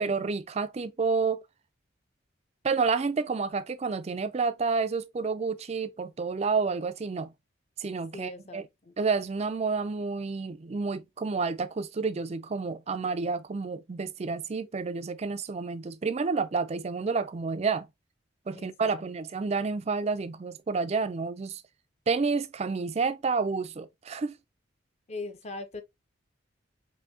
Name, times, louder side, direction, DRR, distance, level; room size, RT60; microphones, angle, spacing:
voice 1, 0.0-1.4 2.6-7.3 7.8-8.6 9.0-17.9 18.5-21.6 22.1-24.3, right 4 dB, 35° right, 0.4 m, -29 dB
voice 2, 8.1-8.9 18.5-19.0 25.1-25.8, left 3 dB, 35° left, 0.7 m, -41 dB
6.0 x 2.7 x 2.7 m
head